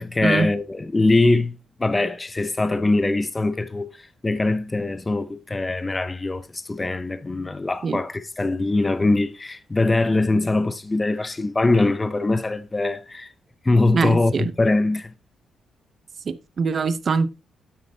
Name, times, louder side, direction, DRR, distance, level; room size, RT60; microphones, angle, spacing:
voice 1, 0.0-3.9 4.2-13.3 13.6-15.1, left 2 dB, 15° left, 0.5 m, -22 dB
voice 2, 13.9-14.5 16.3-17.4, right 5 dB, 35° right, 0.6 m, -23 dB
9.4 x 8.5 x 2.7 m
cardioid pair, 155°, 0 cm